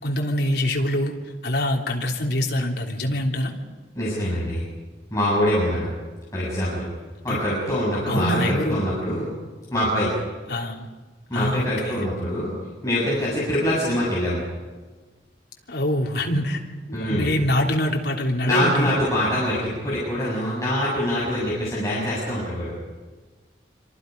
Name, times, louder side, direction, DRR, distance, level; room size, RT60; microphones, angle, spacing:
voice 1, 0.0-1.1 1.4-3.5 7.3-7.4 8.1-8.9 10.5-10.9 11.3-12.0 15.7-16.6 16.9-18.9, left 1 dB, 75° left, 0 dB, 3.3 m, -24 dB
voice 2, 4.0-4.6 5.1-5.9 6.3-6.8 7.2-9.3 9.7-10.1 11.3-12.6 12.8-14.4 16.9-17.3 18.4-22.7, equal, 20° left, -8 dB, 7.5 m, -24 dB
27.0 x 26.0 x 5.4 m, 1.3 s
head